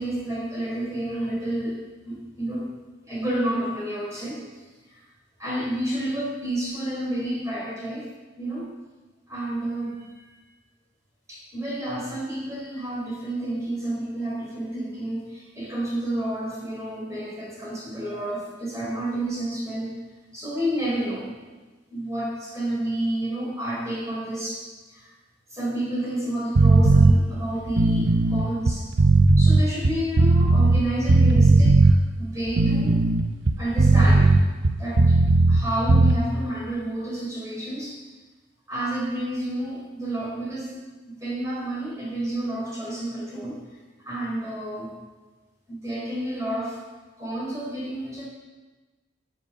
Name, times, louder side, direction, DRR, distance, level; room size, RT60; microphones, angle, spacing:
voice 1, 0.0-1.8 2.1-2.7 3.0-4.4 4.9-5.0 5.4-8.1 8.4-8.7 9.3-10.3 11.3-20.0 20.3-21.3 21.9-25.1 25.5-28.8 29.4-31.9 32.2-33.0 33.6-34.3 34.8-35.2 35.5-38.0 38.7-40.8 41.2-43.6 44.0-44.9 45.7-46.8 47.2-48.3, right 1 dB, 15° right, -5 dB, 3.9 m, -30 dB
sound 1, 26.5-27.1 27.7-30.8 31.1-31.9 32.5-35.6 35.9-36.1, right 2 dB, 70° right, 0.7 m, -17 dB
12.0 x 7.9 x 7.0 m, 1.3 s
head